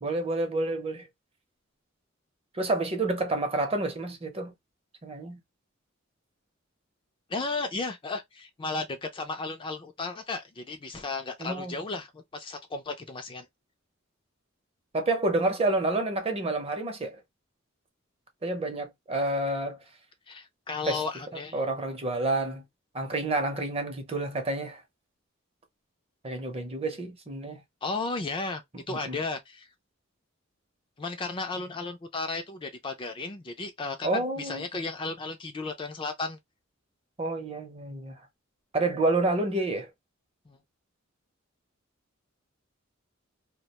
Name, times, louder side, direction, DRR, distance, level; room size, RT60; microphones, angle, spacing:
voice 1, 0.0-1.1 2.6-4.5 5.0-5.4 11.4-11.7 14.9-17.2 18.4-19.8 20.9-21.0 21.5-22.6 22.9-24.8 26.2-27.6 28.9-29.2 34.0-34.6 37.2-38.2 38.7-39.9, right 2 dB, 30° right, 0.7 m, -29 dB
voice 2, 7.3-13.5 20.3-21.6 27.8-28.6 28.9-29.7 31.0-36.4 40.5-40.6, left 3 dB, 25° left, 0.4 m, -34 dB
2.3 x 2.2 x 2.8 m
head